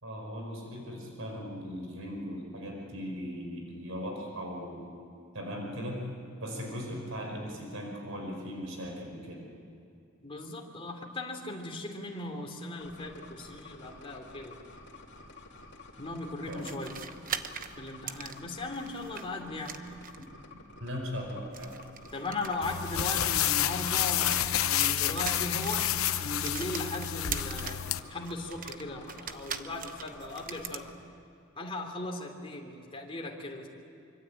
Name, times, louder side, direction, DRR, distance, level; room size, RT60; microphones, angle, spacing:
voice 1, 0.0-4.9 5.3-6.1 6.4-9.5 16.5-16.9 20.8-21.8, equal, 70° right, 1 dB, 5.1 m, -38 dB
voice 2, 10.2-14.6 16.0-16.9 17.8-19.7 22.1-25.9 26.2-30.9 31.5-33.7, left 2 dB, 25° left, 1 dB, 3.3 m, -38 dB
sound 1, 12.8-30.9, left 2 dB, 60° left, 3.0 m, -51 dB
sound 2, 16.5-19.2 19.6-20.3 21.4-24.4 24.7-27.9 28.2-30.8, right 8 dB, 40° right, 1.0 m, -41 dB
sound 3, 22.6-28.0, left 11 dB, 85° left, 0.8 m, -29 dB
25.0 x 25.0 x 8.6 m, 2.6 s
head